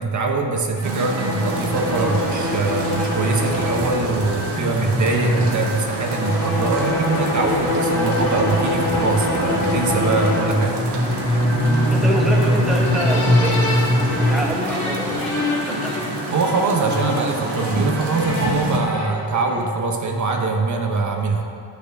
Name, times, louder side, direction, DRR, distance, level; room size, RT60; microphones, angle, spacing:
voice 1, 0.0-10.8 16.3-21.4, right 3 dB, 40° right, 2 dB, 1.1 m, -22 dB
sound 1, 0.8-19.8, left 1 dB, 40° left, 3.0 m, -23 dB
sound 2, 0.8-18.8, right 2 dB, 65° right, 1.8 m, -28 dB
voice 2, 11.9-13.6 14.1-16.0, equal, ahead, -1 dB, 1.0 m, -27 dB
11.5 x 7.1 x 6.0 m, 2.6 s
cardioid pair, 140°, 44 cm